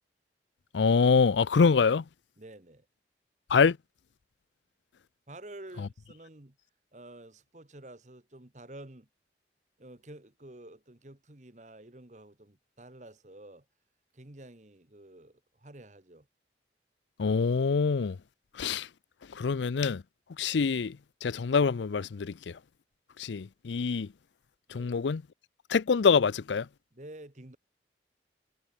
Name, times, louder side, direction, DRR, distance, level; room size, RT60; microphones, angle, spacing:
voice 1, 0.7-2.0 3.5-3.8 17.2-18.2 18.6-18.9 19.3-20.0 20.4-22.6 23.2-24.1 24.7-25.2 25.7-26.7, left 5 dB, 90° left, 0.5 m, -25 dB
voice 2, 2.4-2.8 5.3-6.6 6.9-9.1 9.8-13.6 14.1-16.3 24.7-25.0 26.9-27.6, right 1 dB, 40° right, 1.5 m, -49 dB
head